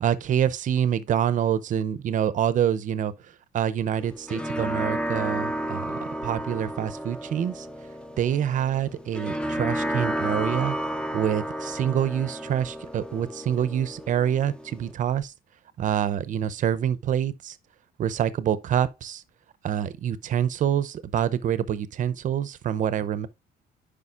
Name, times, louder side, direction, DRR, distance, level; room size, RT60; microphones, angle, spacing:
voice 1, 0.0-3.1 3.5-7.7 8.2-10.8 11.1-15.3 15.8-17.6 18.0-19.2 19.6-23.3, right 9 dB, 50° right, 0.7 m, -26 dB
sound 1, 4.0-14.9, right 1 dB, 5° left, 0.7 m, -32 dB
9.7 x 5.3 x 2.5 m
cardioid pair, 110°, 17 cm